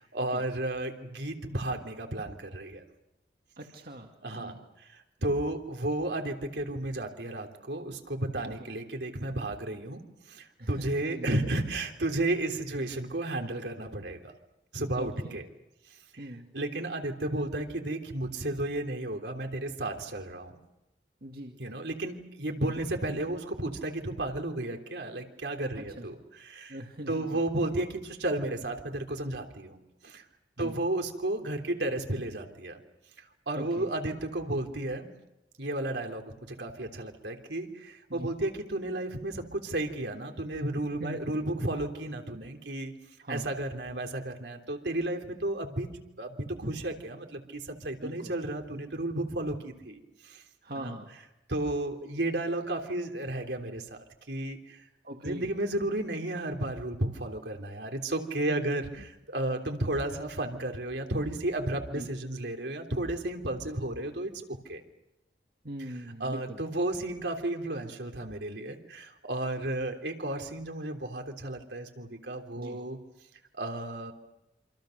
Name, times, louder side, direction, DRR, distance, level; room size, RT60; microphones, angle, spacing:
voice 1, 0.0-2.8 4.2-10.0 10.3-14.3 14.7-15.4 16.1-16.3 16.5-20.6 21.6-26.8 27.1-29.8 30.0-30.2 30.6-32.8 33.5-35.1 35.6-42.9 43.3-45.9 46.2-50.4 50.8-50.9 51.5-54.9 55.2-64.8 66.2-73.0 73.5-74.1, right 1 dB, 80° right, 3 dB, 3.4 m, -33 dB
voice 2, 3.6-4.6 8.4-8.5 10.6-11.3 15.0-15.4 16.2-16.4 21.2-21.6 25.8-26.1 26.7-27.4 30.6-30.8 33.5-33.9 38.1-38.3 41.0-41.2 43.2-43.5 48.0-48.3 50.6-51.1 55.0-55.5 58.4-58.9 61.9-62.1 65.6-66.6 72.5-72.8, right 1 dB, 55° right, 2 dB, 2.2 m, -41 dB
27.5 x 26.5 x 6.6 m, 0.93 s
head